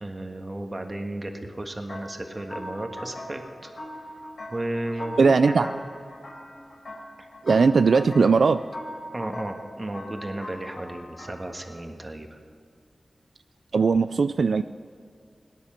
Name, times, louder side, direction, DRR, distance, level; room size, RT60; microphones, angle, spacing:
voice 1, 0.0-3.7 4.5-5.8 9.1-12.4, right 1 dB, 30° right, 4 dB, 1.6 m, -34 dB
sound 1, 1.9-11.8, equal, 70° left, 3.7 m, -40 dB
voice 2, 5.2-5.7 7.4-8.6 13.7-14.6, right 4 dB, 80° right, 11 dB, 0.3 m, -19 dB
18.5 x 10.0 x 5.8 m, 2.3 s
wide cardioid pair, 75°, 0 cm